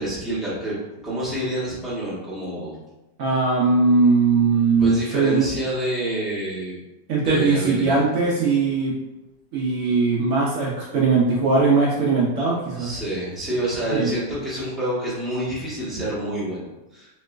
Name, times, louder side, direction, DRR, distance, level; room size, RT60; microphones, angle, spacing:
voice 1, 0.0-2.8 4.8-6.8 7.2-8.0 12.8-17.1, right 1 dB, ahead, -10 dB, 0.3 m, -28 dB
voice 2, 3.2-5.4 7.1-8.9 9.5-12.9 13.9-14.1, right 4 dB, 80° right, -4 dB, 0.7 m, -20 dB
3.0 x 3.0 x 2.3 m, 1.0 s
omnidirectional pair, 2.0 m